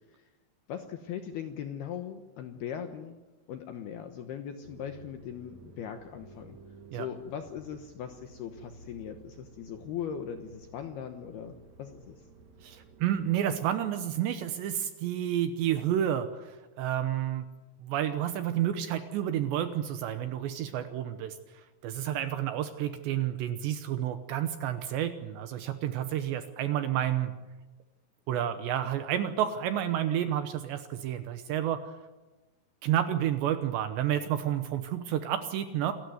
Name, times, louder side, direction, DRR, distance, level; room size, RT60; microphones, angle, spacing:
voice 1, 0.7-3.2 3.5-6.6 6.9-12.2, left 8 dB, 70° left, 6 dB, 2.5 m, -39 dB
sound 1, 4.6-13.4, right 3 dB, 45° right, 2.5 m, -53 dB
voice 2, 12.6-17.4 17.8-21.4 21.8-27.3 28.3-31.9 32.8-35.9, right 11 dB, 75° right, 9 dB, 2.8 m, -30 dB
28.0 x 13.0 x 9.4 m, 1.1 s
omnidirectional pair, 5.9 m